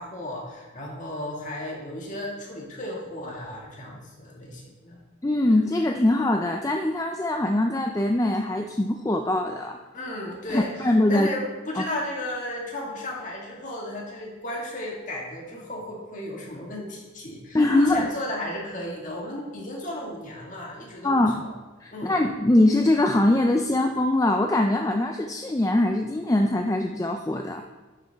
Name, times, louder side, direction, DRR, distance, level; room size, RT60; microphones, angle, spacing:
voice 1, 0.0-5.0 9.9-21.1 21.4-21.5 21.9-22.2, left 1 dB, 40° left, -2 dB, 1.8 m, -34 dB
voice 2, 5.2-9.8 10.5-11.3 17.5-18.1 21.0-21.4 21.8-27.6, left 1 dB, 15° left, 4 dB, 0.4 m, -22 dB
11.0 x 7.1 x 3.4 m, 1.3 s
head